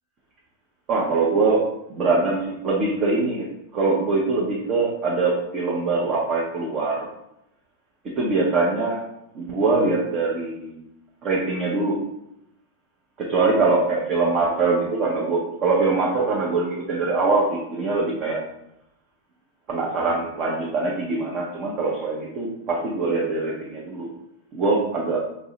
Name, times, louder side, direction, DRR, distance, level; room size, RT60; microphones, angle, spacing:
voice 1, 0.9-1.6 1.9-3.5 3.7-7.1 8.2-9.0 9.3-10.7 11.2-12.0 13.2-18.4 19.7-24.1 24.5-25.2, right 3 dB, 40° right, -4 dB, 0.7 m, -23 dB
2.6 x 2.1 x 3.8 m, 0.81 s
hypercardioid pair, 95°, 0 cm